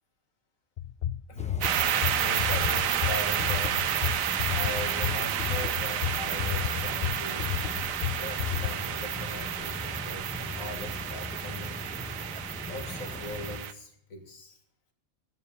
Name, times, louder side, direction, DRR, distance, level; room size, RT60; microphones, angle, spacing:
sound 1, 0.8-8.7, left 11 dB, 60° left, 0.7 m, -31 dB
voice 1, 1.3-1.6 2.2-3.8 4.5-7.5 8.2-11.9 12.7-14.6, left 2 dB, 85° left, 5 dB, 2.4 m, -40 dB
sound 2, 1.4-13.6, left 1 dB, 5° left, 1.0 m, -40 dB
sound 3, 1.6-13.7, right 10 dB, 80° right, 1.2 m, -30 dB
12.5 x 9.7 x 7.0 m, 0.70 s
omnidirectional pair, 1.4 m